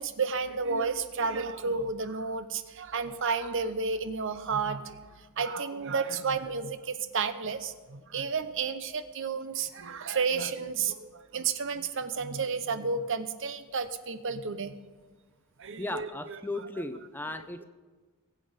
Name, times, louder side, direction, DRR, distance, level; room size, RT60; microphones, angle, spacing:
voice 1, 0.0-5.0 5.4-14.7 15.6-16.4, right 5 dB, 60° right, 11 dB, 0.8 m, -31 dB
voice 2, 15.8-17.6, left 2 dB, 10° left, 10 dB, 0.6 m, -36 dB
21.0 x 8.3 x 5.1 m, 1.4 s
head